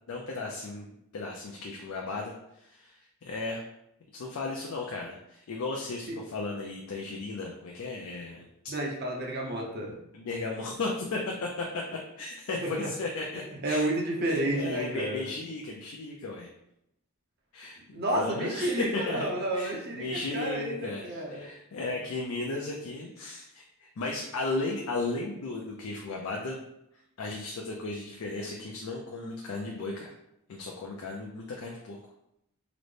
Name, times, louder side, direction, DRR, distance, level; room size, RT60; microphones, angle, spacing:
voice 1, 0.1-3.6 4.1-8.5 10.1-11.6 12.2-13.8 14.3-16.5 17.5-26.6 27.2-30.1 30.5-32.0, left 3 dB, 75° left, -1 dB, 0.4 m, -35 dB
voice 2, 8.7-9.9 12.6-12.9 13.3-15.3 17.9-21.5, right 1 dB, 45° right, -1 dB, 0.7 m, -31 dB
3.9 x 2.1 x 3.2 m, 0.81 s
head